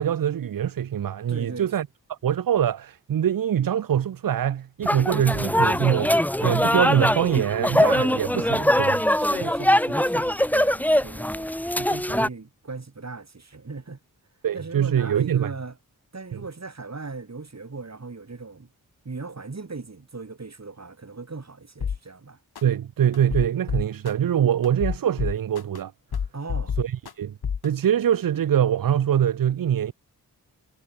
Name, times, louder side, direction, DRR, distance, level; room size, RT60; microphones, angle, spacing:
voice 1, 0.0-9.0 14.4-15.5 16.3-16.4 22.6-25.9 26.8-27.4 27.6-29.9, right 9 dB, 65° right, 0.6 m, -24 dB
voice 2, 1.3-1.7 9.0-14.0 14.5-15.8 16.1-18.7 19.0-22.4 26.3-26.8, right 3 dB, 45° right, 4.0 m, -38 dB
sound 1, 4.8-12.3, equal, 5° left, 1.3 m, -22 dB
sound 2, 21.8-22.0 22.6-22.7 23.1-24.1 24.6-25.8 26.1-27.1 27.4-27.7, left 7 dB, 80° left, 2.1 m, -28 dB
cardioid pair, 60°, 37 cm